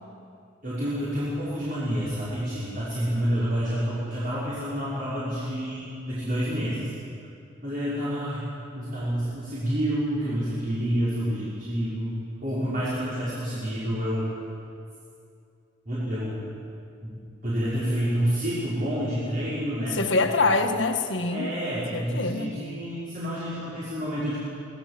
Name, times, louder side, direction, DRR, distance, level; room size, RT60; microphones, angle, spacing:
voice 1, 0.6-6.9 7.6-14.3 15.9-16.4 17.0-17.1 17.4-20.0 21.3-24.4, equal, 45° right, -10 dB, 5.6 m, -28 dB
voice 2, 19.9-21.6 21.9-22.5, left 3 dB, 65° left, 5 dB, 1.7 m, -24 dB
26.0 x 17.5 x 7.7 m, 2.5 s
head